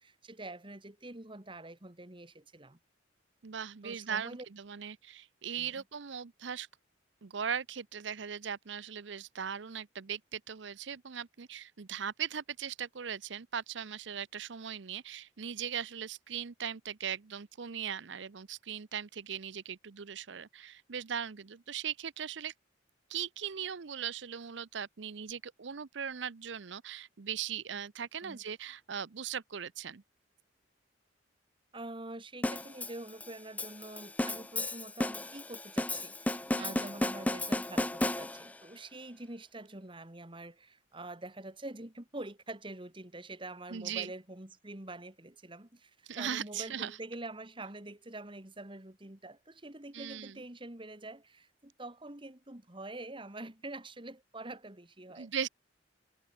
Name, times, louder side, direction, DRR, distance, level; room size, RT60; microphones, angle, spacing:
voice 1, 0.0-2.8 3.8-4.5 5.6-5.7 28.2-28.4 31.7-55.3, right 2 dB, 25° right, 2.0 m, -46 dB
voice 2, 3.4-6.7 7.2-22.5 23.1-30.0 36.6-36.9 43.7-44.1 46.1-47.0 49.9-50.3 55.2-55.5, right 8 dB, 65° right, 0.7 m, -39 dB
sound 1, 32.4-38.6, left 1 dB, 10° left, 0.4 m, -34 dB
head